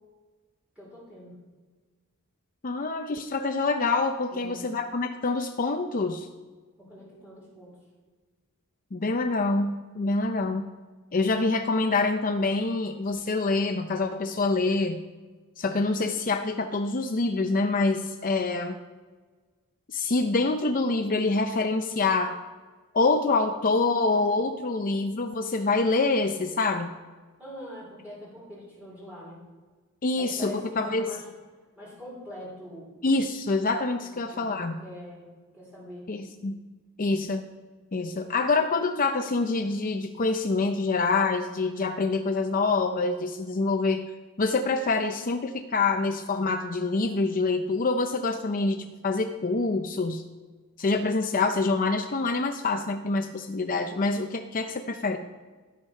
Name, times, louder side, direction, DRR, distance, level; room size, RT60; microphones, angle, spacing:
voice 1, 0.8-1.4 4.3-4.6 6.8-7.8 27.4-29.4 30.1-31.2 31.8-32.9 34.3-35.3 35.5-36.1 38.1-38.3, equal, 5° right, -7 dB, 3.9 m, -43 dB
voice 2, 2.6-6.3 8.9-10.7 11.1-15.0 15.6-18.8 19.9-22.4 22.9-26.9 30.0-31.1 33.0-34.8 36.1-36.6 37.0-37.4 37.9-44.1 44.4-50.2 50.8-55.2, left 3 dB, 40° left, 6 dB, 0.6 m, -26 dB
12.0 x 8.1 x 5.7 m, 1.4 s
head